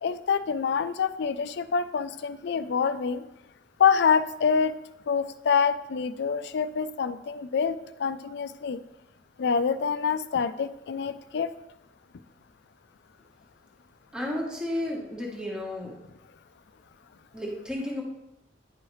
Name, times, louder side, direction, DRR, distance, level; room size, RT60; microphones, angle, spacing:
voice 1, 0.0-3.2 3.8-4.7 5.1-8.8 9.4-11.5, left 6 dB, 65° left, 13 dB, 0.4 m, -26 dB
voice 2, 14.1-15.9 17.3-18.0, left 1 dB, 5° right, -3 dB, 1.2 m, -32 dB
9.9 x 4.7 x 3.2 m, 0.87 s
head